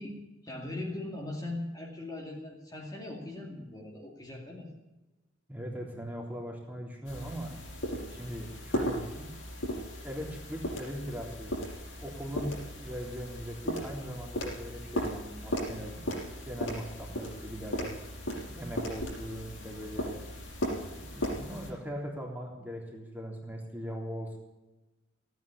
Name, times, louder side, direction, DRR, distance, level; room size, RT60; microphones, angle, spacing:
voice 1, 0.0-4.7, left 2 dB, 20° left, -2 dB, 2.4 m, -40 dB
voice 2, 5.5-7.5 8.1-9.3 10.0-11.5 12.0-16.2 16.5-17.9 18.5-20.2 20.8-24.4, equal, 10° right, -1 dB, 3.5 m, -40 dB
sound 1, 7.1-21.7, equal, 85° left, 5.8 m, -37 dB
17.0 x 9.5 x 8.9 m, 1.1 s
head